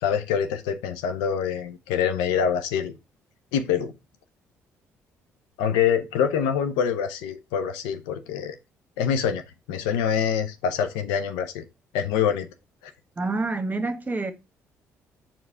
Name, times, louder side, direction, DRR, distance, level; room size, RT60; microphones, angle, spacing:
voice 1, 0.0-2.9 3.5-3.9 5.6-8.6 9.0-9.4 9.7-11.6 11.9-12.5 12.8-12.9, left 8 dB, 80° left, 0.6 m, -25 dB
voice 2, 13.2-14.3, right 3 dB, 25° right, 1.2 m, -27 dB
4.7 x 3.8 x 5.5 m
hypercardioid pair, 50°, 7 cm